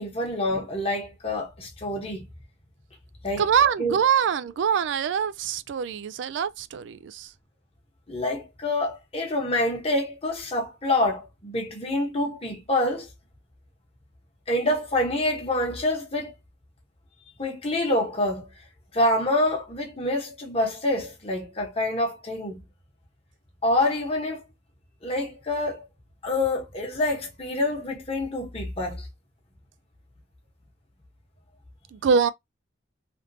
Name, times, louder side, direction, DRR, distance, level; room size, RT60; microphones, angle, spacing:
voice 1, 0.0-2.2 3.2-3.5 3.8-4.0 8.1-13.1 14.5-16.4 17.4-18.5 18.9-22.6 23.6-24.4 25.0-25.8 26.2-29.1, left 1 dB, 30° left, 1.1 m, -26 dB
voice 2, 3.4-7.3 31.9-32.3, right 7 dB, 70° right, 0.3 m, -24 dB
3.5 x 2.5 x 2.7 m
head